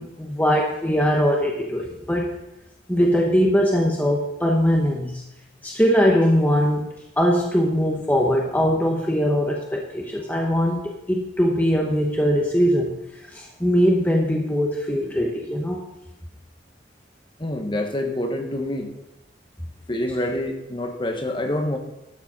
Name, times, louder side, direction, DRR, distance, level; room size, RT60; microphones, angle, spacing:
voice 1, 0.0-2.3 2.9-5.2 5.6-12.9 13.3-15.8, equal, 10° left, -1 dB, 1.0 m, -21 dB
voice 2, 17.4-18.9 19.9-21.8, left 1 dB, 25° left, 4 dB, 1.3 m, -26 dB
12.0 x 7.2 x 5.5 m, 0.90 s
head